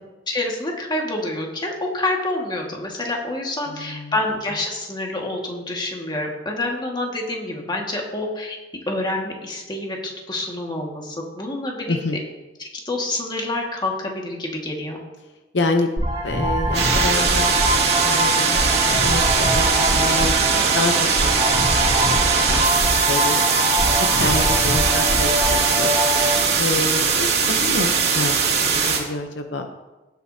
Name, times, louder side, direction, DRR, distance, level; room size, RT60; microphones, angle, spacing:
voice 1, 0.3-8.6 8.9-12.0 12.6-15.0 24.2-24.4, left 2 dB, 25° left, 0 dB, 1.8 m, -27 dB
voice 2, 3.7-4.1 11.9-12.2 15.5-15.9 16.2-18.6 18.9-23.5 24.0-25.9 26.6-28.4 28.7-29.7, left 2 dB, 70° left, 5 dB, 0.7 m, -28 dB
sound 1, 16.0-26.4, equal, 35° right, 2.2 m, -23 dB
sound 2, 16.7-29.0, right 5 dB, 65° right, 2.4 m, -20 dB
17.5 x 8.1 x 2.8 m, 1.1 s
head